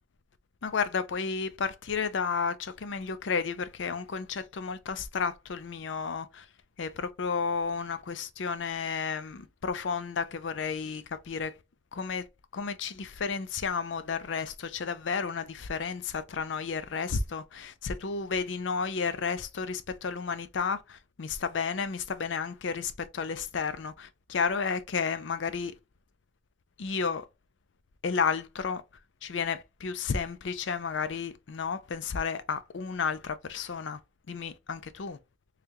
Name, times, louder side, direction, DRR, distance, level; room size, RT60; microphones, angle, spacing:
voice 1, 0.6-6.5 6.8-11.5 11.9-12.2 12.5-25.7 26.8-27.2 28.0-28.8 29.2-34.0 34.3-35.2, left 5 dB, 75° left, 0.5 m, -32 dB
3.5 x 3.3 x 2.7 m
head